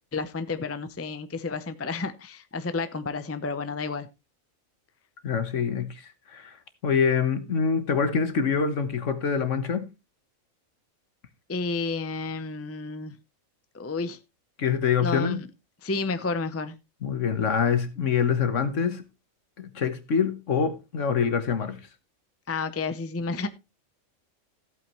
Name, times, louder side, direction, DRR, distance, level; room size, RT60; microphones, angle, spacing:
voice 1, 0.1-4.1 11.5-13.1 13.7-14.2 15.0-15.4 15.8-16.8 22.5-23.5, left 4 dB, 15° left, 0.5 m, -31 dB
voice 2, 5.2-6.6 6.8-9.9 14.6-15.4 17.0-19.0 19.6-21.8, left 6 dB, 65° left, 1.6 m, -25 dB
14.5 x 8.5 x 3.1 m
omnidirectional pair, 1.4 m